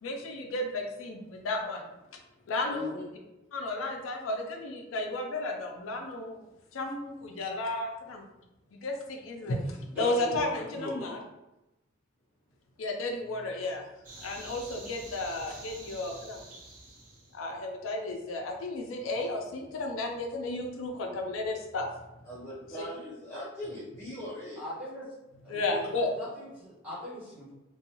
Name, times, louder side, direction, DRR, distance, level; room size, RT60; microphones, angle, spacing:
voice 1, 0.0-1.9 2.5-2.9 3.5-6.4 6.7-8.3 8.7-11.2 12.8-13.8 14.2-16.4 17.3-21.9 22.8-22.9 25.5-26.1, left 2 dB, 90° left, 2 dB, 0.5 m, -33 dB
voice 2, 2.7-3.1 22.2-24.6, left 1 dB, 15° left, -10 dB, 0.6 m, -39 dB
voice 3, 9.9-11.0 24.6-25.0 25.4-27.5, equal, 10° right, -10 dB, 1.3 m, -39 dB
sound 1, 14.0-17.4, right 2 dB, 40° right, 0.8 m, -47 dB
2.6 x 2.3 x 2.7 m, 0.97 s
head